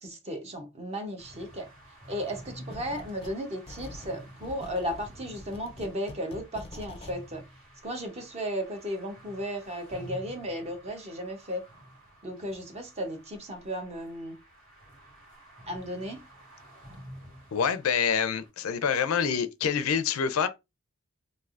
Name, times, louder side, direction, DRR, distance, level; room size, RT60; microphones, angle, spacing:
voice 1, 0.0-1.7 2.1-7.4 7.8-11.6 12.2-14.3 15.7-16.2, equal, 30° right, 0.7 m, -35 dB
sound 1, 1.2-18.5, equal, 65° right, 1.9 m, -50 dB
sound 2, 2.7-3.4 3.7-7.2, left 2 dB, 25° left, 0.4 m, -45 dB
voice 2, 17.5-20.5, left 7 dB, 85° left, 0.4 m, -26 dB
3.2 x 2.7 x 2.4 m
head